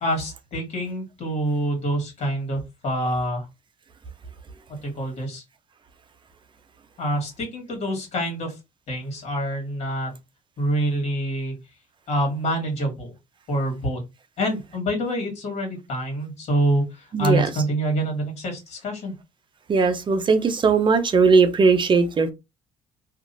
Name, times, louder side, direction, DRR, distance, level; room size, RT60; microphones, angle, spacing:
voice 1, 0.0-3.5 4.8-5.4 7.0-8.6 8.9-10.1 10.6-11.6 12.1-13.1 13.5-14.0 14.4-19.1, right 1 dB, 50° left, 1.6 m, -26 dB
voice 2, 17.1-17.5 19.7-22.3, right 4 dB, 35° right, 0.7 m, -18 dB
2.9 x 2.5 x 2.6 m
supercardioid pair, 80°, 14 cm